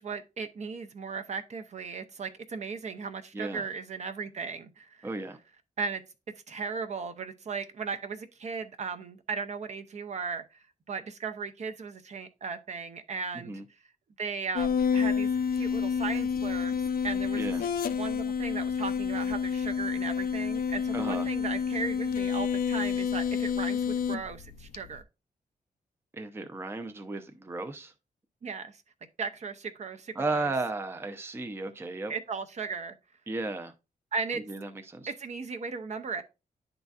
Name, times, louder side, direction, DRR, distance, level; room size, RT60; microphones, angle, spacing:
voice 1, 0.0-5.1 5.8-6.0 6.5-13.5 14.2-17.5 18.0-25.0 28.4-28.8 29.2-30.5 32.1-32.9 34.1-34.4 35.1-36.2, right 5 dB, 50° right, 0.7 m, -36 dB
voice 2, 5.0-5.4 13.3-13.6 17.3-17.6 20.9-21.3 26.1-27.9 30.2-32.1 33.3-33.7 34.5-35.1, right 2 dB, 15° right, 0.6 m, -34 dB
sound 1, 14.6-25.0, left 6 dB, 80° left, 0.5 m, -29 dB
10.5 x 3.9 x 2.4 m
wide cardioid pair, 145°, 15 cm